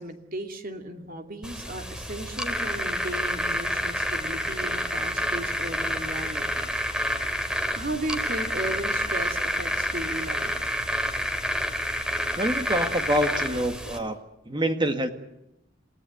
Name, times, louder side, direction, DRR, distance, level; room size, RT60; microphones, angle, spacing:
voice 1, 0.0-6.5 7.8-10.5, right 1 dB, 45° right, 6 dB, 2.6 m, -35 dB
sound 1, 1.4-14.0, equal, 5° right, 2.6 m, -29 dB
voice 2, 12.4-14.2 14.4-15.1, equal, 25° right, 7 dB, 1.7 m, -26 dB
29.0 x 17.5 x 9.3 m, 0.87 s
head